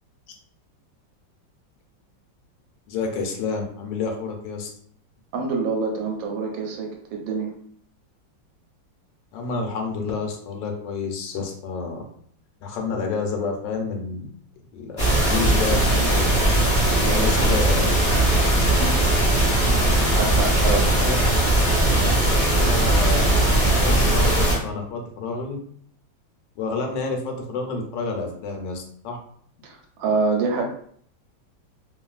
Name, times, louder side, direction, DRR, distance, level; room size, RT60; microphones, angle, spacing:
voice 1, 2.9-4.7 9.3-12.0 12.6-14.3 14.7-16.4 17.1-17.9 20.5-21.2 22.2-23.6 23.8-25.6 26.6-29.2, left 4 dB, 80° left, 2 dB, 1.3 m, -29 dB
voice 2, 5.3-7.5 17.0-17.6 18.8-18.9 20.1-20.8 29.6-30.6, right 4 dB, 85° right, 1 dB, 1.4 m, -26 dB
sound 1, 15.0-24.6, right 1 dB, 15° left, 0.7 m, -19 dB
3.0 x 2.4 x 2.3 m, 0.62 s
omnidirectional pair, 2.0 m